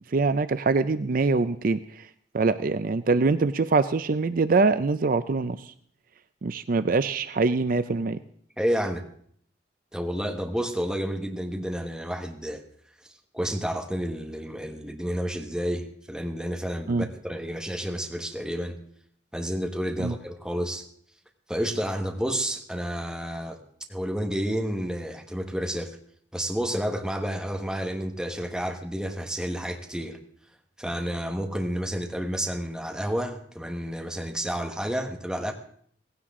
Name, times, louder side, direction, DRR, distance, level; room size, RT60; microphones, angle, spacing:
voice 1, 0.1-1.8 2.3-5.6 6.4-8.2 16.9-17.1 20.0-20.1, right 3 dB, 50° right, 12 dB, 0.5 m, -23 dB
voice 2, 8.6-9.0 9.9-12.6 13.3-18.8 19.3-20.8 21.5-23.6 23.9-26.0 26.3-30.2 30.8-35.5, equal, 5° right, 3 dB, 1.4 m, -30 dB
17.5 x 16.0 x 3.7 m, 0.62 s
head